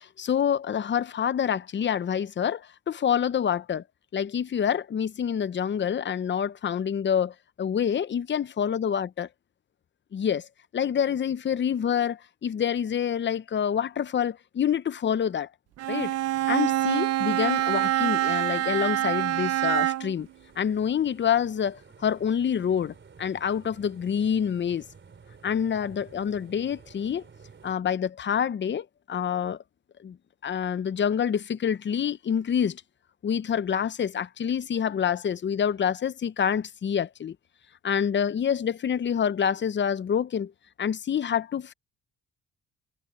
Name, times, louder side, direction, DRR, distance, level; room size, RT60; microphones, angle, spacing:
voice 1, 0.0-3.8 4.1-9.3 10.1-10.5 10.7-15.5 15.9-16.1 16.5-20.3 20.6-24.8 25.4-27.2 27.6-29.6 30.0-30.2 30.4-32.8 33.2-37.4 37.8-40.5 40.8-41.7, left 8 dB, 40° left, 0.7 m, -27 dB
Bowed string instrument, 15.8-20.2, right 13 dB, 55° right, 0.5 m, -25 dB
sound 1, 19.8-27.7, right 5 dB, 40° right, 3.6 m, -52 dB
cardioid pair, 90°, 30 cm